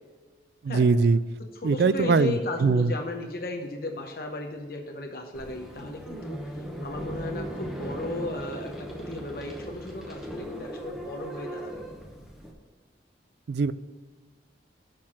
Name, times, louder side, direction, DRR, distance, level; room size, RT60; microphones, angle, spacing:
voice 1, 0.6-1.2 1.6-2.9 13.5-13.7, right 4 dB, 65° right, 15 dB, 0.4 m, -22 dB
voice 2, 1.4-6.5 6.8-11.8, left 2 dB, 55° left, 2 dB, 0.8 m, -35 dB
sound 1, 5.3-12.5, right 1 dB, ahead, 0.9 m, -38 dB
6.5 x 5.8 x 6.1 m, 1.5 s
head